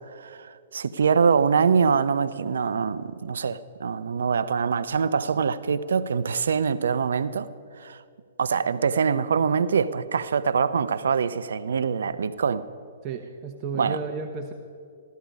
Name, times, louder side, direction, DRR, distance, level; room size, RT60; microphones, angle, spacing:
voice 1, 0.0-7.5 7.8-8.0 8.4-12.7 13.8-14.0, right 6 dB, 70° right, 0.6 m, -24 dB
voice 2, 13.0-14.5, right 5 dB, 35° right, 0.9 m, -33 dB
15.5 x 13.0 x 5.3 m
hypercardioid pair, 125°, 0 cm